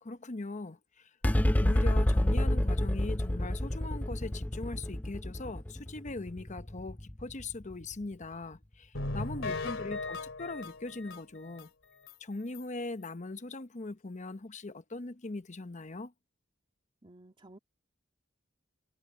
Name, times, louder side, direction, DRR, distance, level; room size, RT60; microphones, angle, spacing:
voice 1, 0.0-1.1 1.6-11.7 12.2-16.1, left 2 dB, 40° left, 0.9 m, -40 dB
sound 1, 1.2-7.9, left 1 dB, 10° left, 0.4 m, -29 dB
sound 2, 8.9-11.7 12.1-12.2 12.5-12.6 13.0-13.1, left 2 dB, 90° left, 2.5 m, -37 dB
voice 2, 9.4-10.2 17.0-17.6, right 1 dB, 25° right, 2.6 m, -57 dB
head